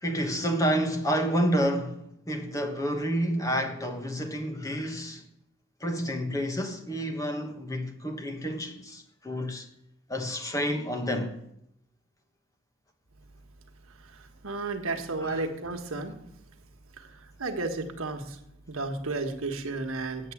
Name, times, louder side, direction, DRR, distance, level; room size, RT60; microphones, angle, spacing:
voice 1, 0.0-5.2 5.8-9.7 10.1-11.4 15.2-15.4, equal, 15° left, 1.2 m, -29 dB
voice 2, 14.1-16.2 17.0-18.4 18.7-20.3, right 3 dB, 90° right, 1.4 m, -33 dB
7.9 x 7.9 x 8.4 m
head